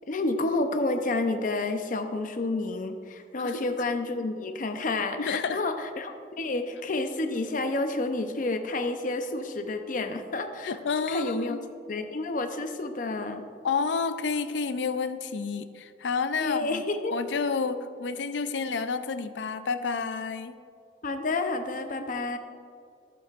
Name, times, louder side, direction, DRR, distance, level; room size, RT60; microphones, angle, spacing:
voice 1, 0.1-10.8 11.1-11.6 11.9-13.4 16.4-17.1 21.0-22.4, left 2 dB, 50° left, 7 dB, 0.7 m, -30 dB
voice 2, 3.4-3.8 5.2-5.6 10.6-11.7 13.6-16.8 17.1-20.6, left 5 dB, 85° left, 11 dB, 0.5 m, -30 dB
14.0 x 7.9 x 2.5 m, 2.3 s
head